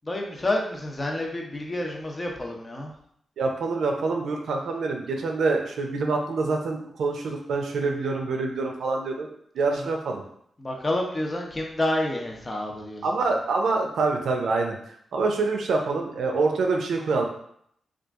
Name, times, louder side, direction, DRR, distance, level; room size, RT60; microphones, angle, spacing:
voice 1, 0.0-2.9 9.8-9.9 10.6-13.0, left 1 dB, 30° left, 1 dB, 0.7 m, -29 dB
voice 2, 3.4-9.3 9.5-10.2 13.0-14.8 15.1-17.3, right 3 dB, 85° right, 2 dB, 0.5 m, -26 dB
2.9 x 2.4 x 3.5 m, 0.68 s
cardioid pair, 75°, 0 cm